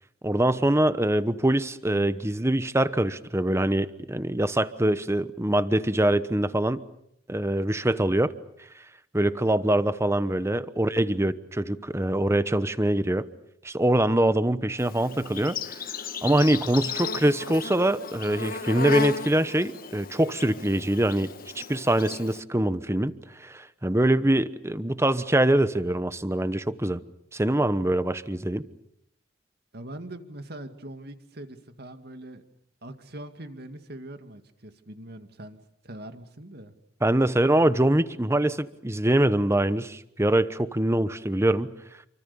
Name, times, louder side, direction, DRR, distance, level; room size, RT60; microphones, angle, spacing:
voice 1, 0.2-6.8 7.3-8.3 9.1-13.3 13.6-15.8 16.2-21.3 21.5-27.0 27.3-28.7 37.0-41.7, right 1 dB, 15° right, 14 dB, 1.0 m, -24 dB
Insect, 14.8-22.4, left 4 dB, 50° left, 1.3 m, -35 dB
voice 2, 29.7-32.4 32.8-35.6 35.8-36.7, right 1 dB, 60° right, 8 dB, 2.2 m, -42 dB
28.5 x 25.0 x 7.0 m, 0.76 s
head